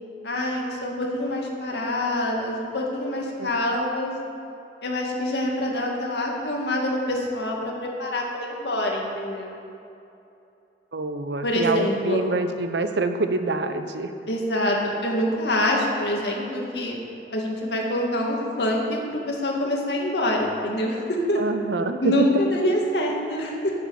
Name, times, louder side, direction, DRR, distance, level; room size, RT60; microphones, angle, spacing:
voice 1, 0.2-4.1 4.8-9.6 11.4-12.2 14.3-17.0 17.3-21.4 22.0-23.7, left 1 dB, 75° left, -1 dB, 2.1 m, -25 dB
voice 2, 10.9-14.1 21.4-22.3, right 3 dB, 80° right, 8 dB, 0.8 m, -26 dB
9.7 x 7.7 x 8.6 m, 2.8 s
head